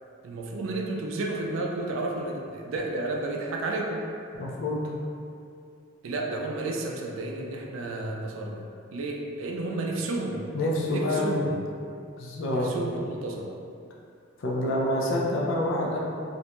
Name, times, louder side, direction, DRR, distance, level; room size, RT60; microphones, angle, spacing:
voice 1, 0.2-4.0 6.0-10.5 10.8-11.6 12.5-13.5, right 2 dB, 80° right, 0 dB, 0.3 m, -32 dB
voice 2, 4.4-4.8 9.7-9.8 10.5-11.5 12.2-12.7 14.4-16.0, left 1 dB, 70° left, -3 dB, 0.4 m, -27 dB
2.5 x 2.1 x 2.9 m, 2.5 s
head